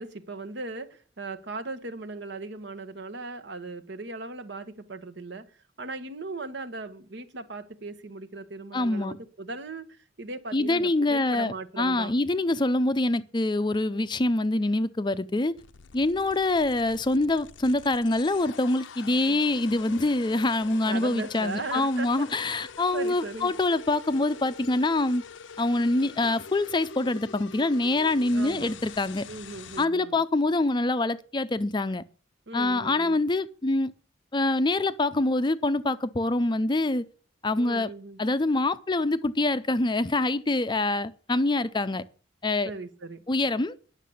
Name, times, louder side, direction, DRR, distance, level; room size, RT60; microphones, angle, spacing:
voice 1, 0.0-5.5 5.8-12.1 19.3-19.4 20.8-22.3 22.9-23.5 28.3-28.8 29.3-30.2 32.5-33.2 37.6-38.2 42.6-43.2, right 3 dB, 65° right, 1.1 m, -38 dB
voice 2, 8.7-9.2 10.5-15.5 15.9-25.2 25.6-29.3 29.8-32.0 32.5-33.9 34.3-37.1 37.4-37.9 38.2-42.0 42.4-42.7 43.3-43.8, left 2 dB, 25° left, 0.5 m, -25 dB
sound 1, 15.6-29.8, left 6 dB, 75° left, 0.6 m, -45 dB
10.0 x 6.6 x 8.4 m
head